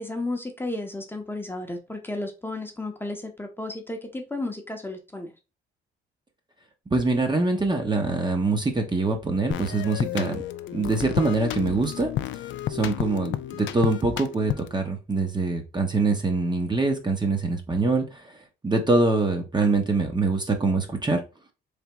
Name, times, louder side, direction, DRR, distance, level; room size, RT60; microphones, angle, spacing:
voice 1, 0.0-5.3, left 2 dB, 10° left, 0.8 m, -33 dB
voice 2, 6.9-10.4 10.7-12.1 12.7-18.2 18.6-21.2, right 3 dB, 20° right, 0.8 m, -24 dB
sound 1, 9.5-14.8, left 12 dB, 70° left, 0.4 m, -31 dB
3.5 x 3.4 x 3.0 m
cardioid pair, 90°, 20 cm